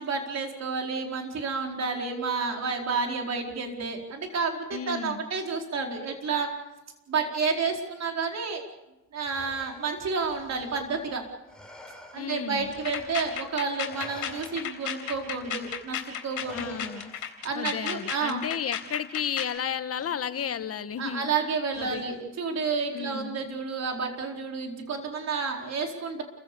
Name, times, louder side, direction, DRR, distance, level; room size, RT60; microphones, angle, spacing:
voice 1, 0.0-6.6 7.1-8.6 9.1-11.2 12.1-16.8 17.4-18.4 21.0-26.2, right 4 dB, 60° right, 3 dB, 4.6 m, -30 dB
voice 2, 4.7-5.3 12.2-12.7 16.5-17.1 17.5-21.3 21.8-22.0 22.9-23.4, left 8 dB, 50° left, 11 dB, 1.5 m, -33 dB
Respiratory sounds, 9.2-13.5 13.9-17.5 18.8-19.0 19.9-20.5 21.7-22.4, left 1 dB, 5° left, 4.2 m, -50 dB
sound 1, 12.7-19.6, left 9 dB, 70° left, 3.7 m, -35 dB
30.0 x 15.5 x 7.0 m, 0.97 s
cardioid pair, 90°, 30 cm